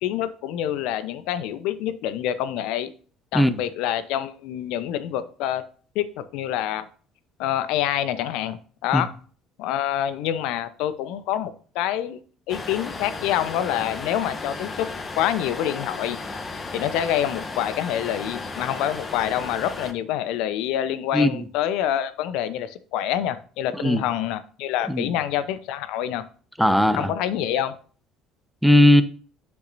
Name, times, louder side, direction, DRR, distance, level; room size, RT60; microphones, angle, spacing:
voice 1, 0.0-2.9 3.3-5.6 5.9-6.9 7.4-9.1 9.6-12.2 12.5-14.9 15.2-16.2 16.7-26.2 26.9-27.7, left 11 dB, 70° left, 0.8 m, -26 dB
sound 1, 12.5-19.9, left 3 dB, 30° left, 1.5 m, -34 dB
voice 2, 26.6-27.1 28.6-29.0, left 1 dB, ahead, 0.9 m, -18 dB
9.6 x 7.0 x 2.7 m
hypercardioid pair, 60°, 0 cm